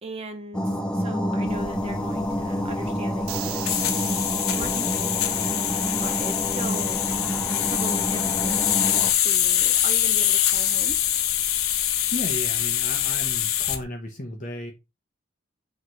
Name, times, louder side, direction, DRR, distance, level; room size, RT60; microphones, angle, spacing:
voice 1, 0.0-3.6 4.5-7.0 7.7-8.7 9.2-11.0, right 1 dB, 30° right, 0.6 m, -38 dB
sound 1, 0.5-9.1, equal, 5° left, 1.0 m, -28 dB
sound 2, 1.5-13.8, left 11 dB, 80° left, 1.0 m, -24 dB
sound 3, 3.3-5.6, right 11 dB, 90° right, 0.9 m, -38 dB
voice 2, 12.1-14.7, left 1 dB, 35° left, 1.0 m, -34 dB
8.5 x 3.2 x 4.6 m
head